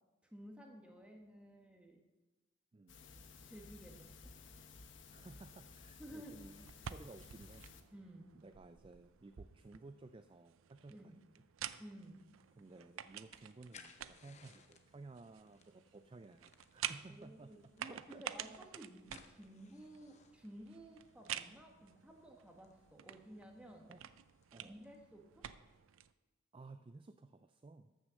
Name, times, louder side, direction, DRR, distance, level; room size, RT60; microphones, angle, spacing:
voice 1, 0.2-2.0 3.4-4.3 6.0-6.5 7.9-8.3 10.9-11.2 11.8-12.3 17.1-17.6 17.9-23.9 24.6-25.5, right 1 dB, 5° right, 1 dB, 1.5 m, -54 dB
sound 1, 2.9-7.8, left 4 dB, 65° left, 1.1 m, -56 dB
voice 2, 5.1-7.7 8.3-11.0 12.6-18.6 23.9-24.0 24.5-24.9 26.5-27.9, right 3 dB, 25° right, 9 dB, 0.3 m, -56 dB
sound 2, 6.6-26.1, right 10 dB, 85° right, 0.5 m, -50 dB
sound 3, 12.5-25.0, left 6 dB, 35° left, 0.8 m, -66 dB
13.5 x 6.5 x 6.4 m, 1.2 s
head